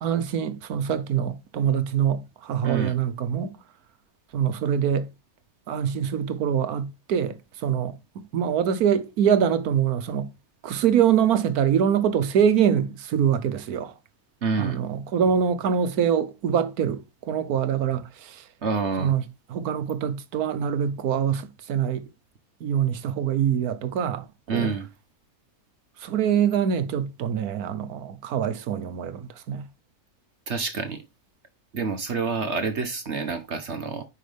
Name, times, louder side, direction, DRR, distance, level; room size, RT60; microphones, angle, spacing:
voice 1, 0.0-3.6 4.3-5.1 5.7-10.3 10.6-13.9 14.6-18.4 19.0-19.2 19.5-22.1 22.6-24.3 24.5-24.7 26.0-29.7, right 8 dB, 80° right, 1.3 m, -24 dB
voice 2, 2.6-3.0 14.4-14.8 18.6-19.1 24.5-24.9 30.5-31.0 31.7-34.1, right 4 dB, 50° right, 1.2 m, -28 dB
9.3 x 5.5 x 3.4 m
omnidirectional pair, 1.6 m